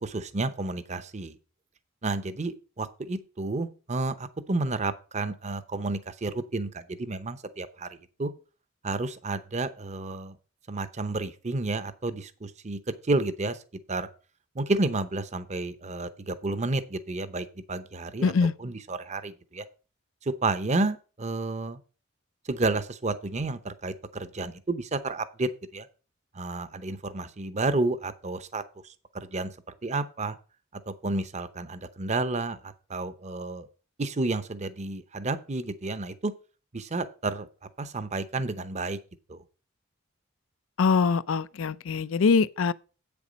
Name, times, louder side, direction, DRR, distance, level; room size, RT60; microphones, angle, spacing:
voice 1, 0.0-1.4 2.0-7.9 8.2-8.3 8.8-10.4 10.7-13.6 13.9-14.1 14.5-19.7 20.3-21.8 22.5-25.9 26.3-28.6 29.1-29.5 29.8-30.4 30.9-33.7 34.0-36.3 36.7-37.5 37.8-39.0 39.3-39.4, right 2 dB, 35° right, 0.7 m, -31 dB
voice 2, 18.2-18.5 40.8-42.7, left 5 dB, 70° left, 0.5 m, -23 dB
8.3 x 7.0 x 5.1 m
head